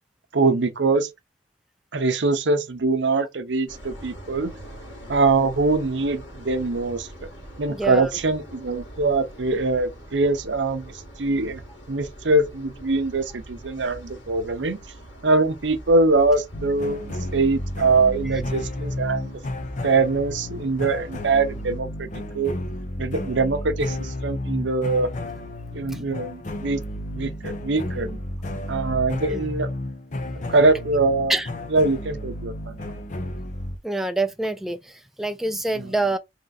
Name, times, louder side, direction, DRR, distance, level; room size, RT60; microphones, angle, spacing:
voice 1, 0.3-1.1 1.9-4.5 5.1-7.1 7.6-10.9 11.2-11.6 11.9-14.8 15.2-19.3 19.8-22.1 22.3-22.5 23.0-25.1 25.7-26.8 27.1-28.2 28.7-29.7 30.3-31.3 31.7-32.8 35.8-35.9, right 3 dB, 70° right, 0.7 m, -23 dB
sound 1, 3.7-21.8, right 1 dB, 85° left, 2.5 m, -43 dB
voice 2, 7.7-8.1 18.3-18.4 25.9-26.0 29.3-29.4 31.3-31.5 33.8-36.2, right 2 dB, ahead, 0.4 m, -26 dB
sound 2, 16.5-33.8, left 1 dB, 45° left, 0.8 m, -32 dB
3.8 x 3.2 x 4.0 m
head